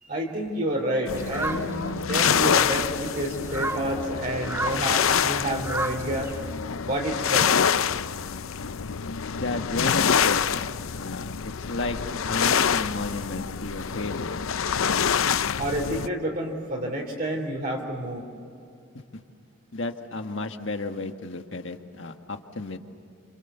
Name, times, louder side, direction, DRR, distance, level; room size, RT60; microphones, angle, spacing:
voice 1, 0.0-6.3 6.8-7.5 15.6-18.3, right 1 dB, 45° right, -1 dB, 3.4 m, -29 dB
sound 1, 1.1-16.1, left 7 dB, 75° left, 0.6 m, -26 dB
sound 2, 1.2-6.6, right 2 dB, 10° right, 0.7 m, -35 dB
voice 2, 9.3-12.0 12.3-14.5 19.7-22.8, left 2 dB, 60° left, 6 dB, 1.6 m, -33 dB
29.0 x 28.0 x 6.9 m, 2.5 s
head